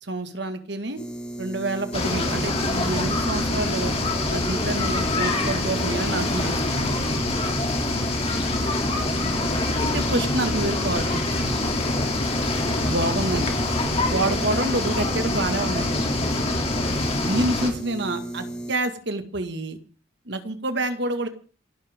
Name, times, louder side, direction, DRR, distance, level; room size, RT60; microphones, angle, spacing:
voice 1, 0.0-1.0 1.4-3.9 4.3-7.1 9.8-11.7 12.8-13.5 14.1-16.0 17.2-19.8 20.3-21.3, right 2 dB, 55° right, 7 dB, 2.0 m, -28 dB
sound 1, 1.0-18.7, right 1 dB, 5° left, 1.8 m, -35 dB
sound 2, 1.9-17.7, left 2 dB, 30° left, 3.0 m, -25 dB
voice 2, 7.8-9.5, left 1 dB, 90° left, 1 dB, 7.0 m, -43 dB
27.5 x 12.5 x 3.7 m, 0.39 s
head